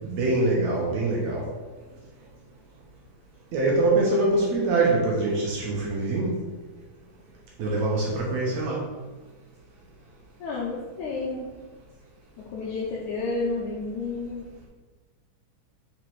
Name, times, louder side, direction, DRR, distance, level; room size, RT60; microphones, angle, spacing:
voice 1, 0.0-1.5 3.5-6.4 7.6-8.8, right 2 dB, 65° right, -3 dB, 2.1 m, -24 dB
voice 2, 10.4-11.5 12.4-14.5, left 3 dB, 75° left, -5 dB, 2.1 m, -31 dB
5.1 x 4.8 x 4.6 m, 1.3 s
omnidirectional pair, 3.9 m